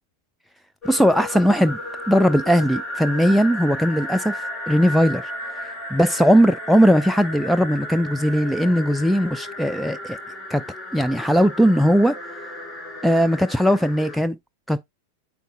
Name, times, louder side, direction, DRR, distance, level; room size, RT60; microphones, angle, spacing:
sound 1, 0.8-14.2, left 1 dB, 20° left, 2.8 m, -34 dB
voice 1, 0.8-1.8 2.1-5.2 5.9-10.2 10.5-10.6 10.9-12.1 13.0-14.4 14.7-14.8, equal, ahead, 0.3 m, -18 dB
9.1 x 4.6 x 2.3 m
figure-of-eight pair, 90°, 0 cm